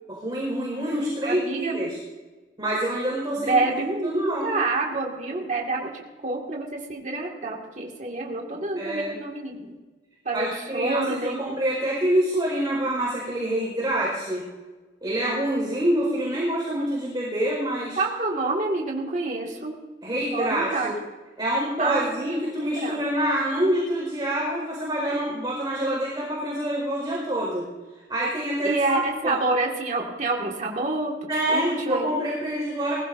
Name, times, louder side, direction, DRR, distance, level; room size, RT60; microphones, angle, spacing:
voice 1, 0.2-1.9 2.6-3.5 4.0-4.6 8.8-9.1 10.3-14.4 15.0-18.0 20.0-20.9 21.4-27.7 28.1-29.0 29.2-29.4 31.3-32.9, right 1 dB, 25° right, -6 dB, 4.8 m, -26 dB
voice 2, 1.2-1.8 3.3-9.7 10.2-11.6 18.0-19.7 20.3-20.9 21.8-23.0 28.6-31.1 31.5-32.2, right 2 dB, 45° right, -1 dB, 2.1 m, -28 dB
20.5 x 15.5 x 2.7 m, 1.2 s
head